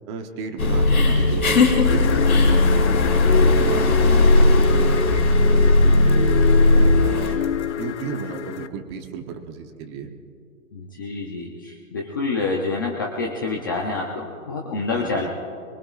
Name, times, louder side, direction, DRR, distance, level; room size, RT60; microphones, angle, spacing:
voice 1, 0.1-3.0 3.3-6.3 6.7-7.4 7.7-10.1 14.9-15.3, right 6 dB, 20° right, 6 dB, 0.8 m, -34 dB
sound 1, 0.6-7.4, left 2 dB, 80° left, 3.8 m, -17 dB
sound 2, 1.8-8.7, left 10 dB, 55° left, 0.7 m, -27 dB
voice 2, 10.7-15.3, left 3 dB, 15° left, 0 dB, 0.5 m, -27 dB
23.5 x 23.0 x 2.4 m, 2.4 s
hypercardioid pair, 150°, 43 cm